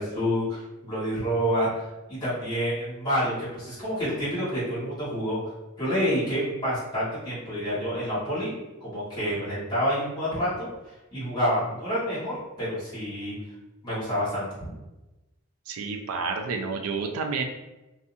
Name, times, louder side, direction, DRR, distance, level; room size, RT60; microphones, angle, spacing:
voice 1, 0.0-1.7 2.1-5.4 5.8-8.5 8.8-10.7 11.1-13.4 13.8-14.7, equal, 20° left, -11 dB, 1.4 m, -28 dB
voice 2, 15.7-17.4, right 4 dB, 80° right, 4 dB, 0.4 m, -30 dB
2.7 x 2.4 x 2.6 m, 1.0 s
head